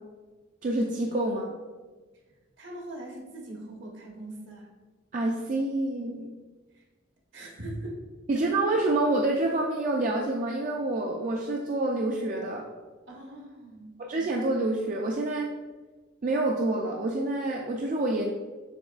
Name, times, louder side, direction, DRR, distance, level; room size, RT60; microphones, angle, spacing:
voice 1, 0.6-1.6 5.1-6.3 8.3-12.7 14.0-15.5 16.2-18.3, right 2 dB, 40° right, 0 dB, 0.3 m, -27 dB
voice 2, 2.6-4.7 7.3-8.0 13.1-13.9, right 1 dB, 70° right, -1 dB, 1.0 m, -41 dB
7.0 x 3.0 x 2.4 m, 1.3 s
head